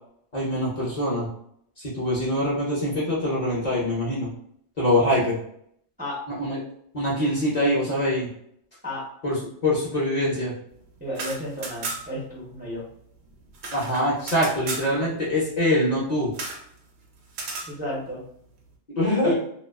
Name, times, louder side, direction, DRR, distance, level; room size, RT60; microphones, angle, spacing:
voice 1, 0.3-1.3 1.8-4.3 4.8-5.4 6.4-6.6 6.9-8.3 9.2-10.5 13.7-16.3 19.0-19.3, left 1 dB, 45° left, -6 dB, 0.6 m, -24 dB
voice 2, 11.0-12.9 17.7-18.2 19.2-19.3, equal, 15° right, -6 dB, 0.4 m, -32 dB
sound 1, 11.0-12.3 12.5-12.6 12.9-14.9 16.3-16.7 17.3-17.7, right 3 dB, 70° right, 0.8 m, -34 dB
2.4 x 2.3 x 2.3 m, 0.69 s
omnidirectional pair, 1.2 m